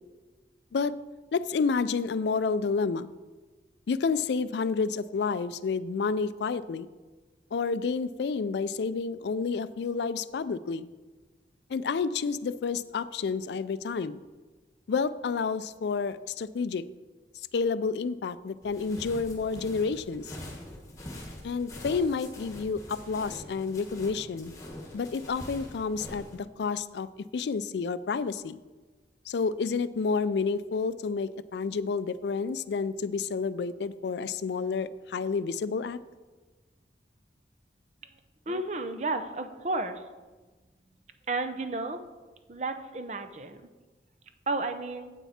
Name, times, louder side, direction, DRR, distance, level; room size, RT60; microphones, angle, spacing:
voice 1, 1.3-3.1 3.9-6.9 7.5-10.9 11.7-14.2 14.9-16.8 17.5-20.4 21.4-24.5 24.9-27.1 27.3-28.6 29.3-36.0, left 5 dB, 75° left, 16 dB, 0.4 m, -30 dB
sound 1, 18.6-26.4, left 1 dB, 20° left, 1.4 m, -44 dB
voice 2, 38.5-40.0 41.3-42.0 42.5-43.6 44.5-45.1, right 2 dB, 40° right, 8 dB, 0.6 m, -32 dB
9.0 x 8.2 x 4.2 m, 1.3 s
head